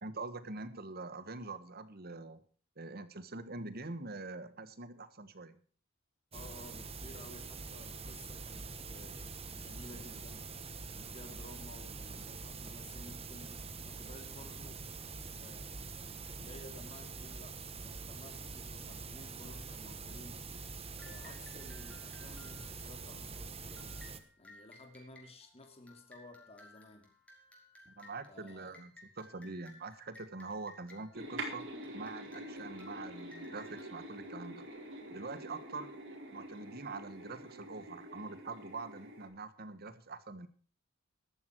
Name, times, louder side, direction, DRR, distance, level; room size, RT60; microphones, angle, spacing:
voice 1, 0.0-2.4 2.8-5.6 27.9-31.7 31.9-34.7 35.1-35.9 36.3-40.5, right 3 dB, 50° right, 13 dB, 1.5 m, -44 dB
voice 2, 6.3-10.5 10.8-14.8 15.3-15.9 16.3-17.6 17.8-20.5 21.0-24.0 24.4-27.1 28.3-28.8, left 1 dB, 30° left, 4 dB, 2.7 m, -54 dB
sound 1, 6.3-24.2, right 4 dB, 30° right, 1.4 m, -45 dB
sound 2, 21.0-35.1, left 2 dB, 5° left, 4.4 m, -59 dB
sound 3, 31.1-39.3, right 1 dB, 65° right, 4.5 m, -46 dB
14.5 x 12.0 x 4.6 m, 0.43 s
head